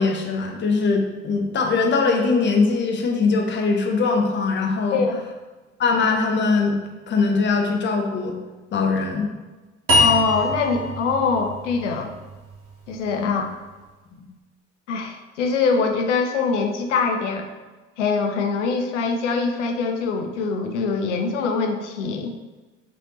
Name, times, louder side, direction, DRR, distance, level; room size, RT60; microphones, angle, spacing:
voice 1, 0.0-5.0 5.8-6.8 7.1-8.4 8.7-9.3 13.2-13.4 14.1-14.2, left 4 dB, 30° left, 2 dB, 0.8 m, -21 dB
sound 1, 9.9-13.1, left 2 dB, 40° right, 1.3 m, -24 dB
voice 2, 10.0-12.1 12.9-13.5 14.9-17.5 18.0-22.3, left 4 dB, 75° left, 5 dB, 0.6 m, -23 dB
5.3 x 3.4 x 2.8 m, 1.2 s
figure-of-eight pair, 55°, 37 cm